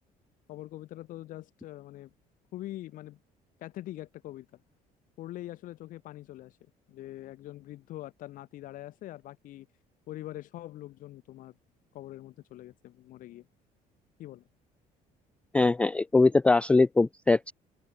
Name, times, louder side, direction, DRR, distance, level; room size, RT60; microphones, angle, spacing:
voice 1, 0.5-2.1 2.5-3.2 3.6-4.5 5.2-6.6 6.9-9.7 10.1-11.5 11.9-13.4 14.2-14.4, left 15 dB, 65° left, 7.7 m, -43 dB
voice 2, 15.5-17.5, left 3 dB, 10° left, 0.3 m, -22 dB
cardioid pair, 160°, 15 cm